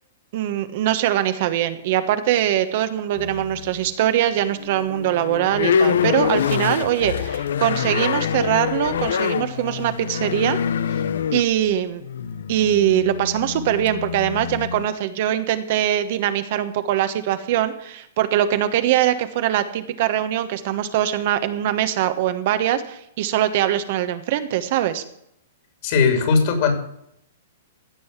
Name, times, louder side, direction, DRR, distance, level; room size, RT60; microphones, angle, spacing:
voice 1, 0.3-10.6 11.3-12.0 12.5-25.0, right 11 dB, 50° right, 10 dB, 1.2 m, -22 dB
sound 1, 3.2-3.9 4.3-14.9, left 8 dB, 80° left, 0.7 m, -25 dB
voice 2, 25.8-26.7, left 5 dB, 45° left, 7 dB, 3.3 m, -18 dB
16.0 x 5.5 x 8.1 m, 0.76 s
hypercardioid pair, 150°, 0 cm